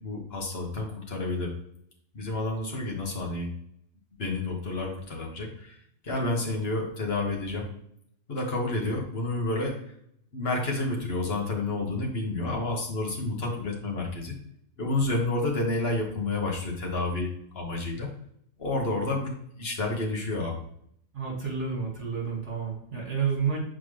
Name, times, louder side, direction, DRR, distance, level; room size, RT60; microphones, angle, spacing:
voice 1, 0.0-1.5 2.1-3.5 4.2-5.7 6.0-7.7 8.3-9.8 10.3-14.4 14.8-18.1 18.6-20.6, left 2 dB, 55° left, 0 dB, 1.6 m, -30 dB
voice 2, 21.1-23.6, right 6 dB, 65° right, -2 dB, 2.1 m, -30 dB
7.3 x 4.3 x 3.2 m, 0.69 s
omnidirectional pair, 1.3 m